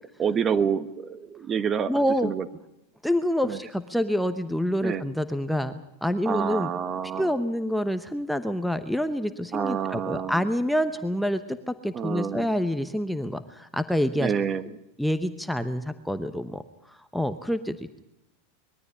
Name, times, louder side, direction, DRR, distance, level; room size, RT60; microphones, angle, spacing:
voice 1, 0.2-2.4 3.4-3.6 4.8-5.0 6.2-7.3 9.5-10.3 11.9-12.5 14.2-14.7, right 7 dB, 25° right, 14 dB, 1.2 m, -28 dB
voice 2, 1.9-2.3 3.0-6.7 7.2-14.3 15.0-16.6 17.1-18.0, equal, ahead, 9 dB, 0.9 m, -27 dB
21.5 x 13.5 x 9.6 m, 0.91 s
supercardioid pair, 130°, 0 cm